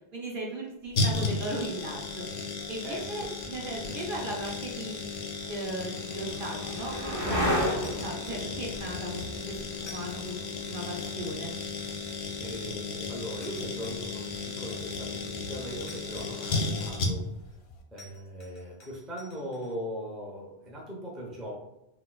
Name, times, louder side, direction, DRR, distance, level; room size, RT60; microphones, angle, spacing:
voice 1, 0.1-2.3 2.7-5.2 5.5-9.6 9.8-10.3 10.7-11.5, right 1 dB, 55° right, -2 dB, 0.7 m, -37 dB
sound 1, 0.9-17.5 17.7-17.8, left 3 dB, 65° left, 0.8 m, -34 dB
voice 2, 2.8-3.3 12.4-17.5 17.9-21.5, equal, ahead, -4 dB, 0.4 m, -39 dB
sound 2, 5.1-12.7 15.0-15.6, equal, 40° right, 1.7 m, -35 dB
sound 3, 7.8-9.2 9.8-11.1 11.8-12.9 13.4-14.9 15.9-17.2 18.0-19.7, left 2 dB, 25° left, 0.8 m, -53 dB
4.0 x 2.2 x 2.3 m, 0.92 s
omnidirectional pair, 1.2 m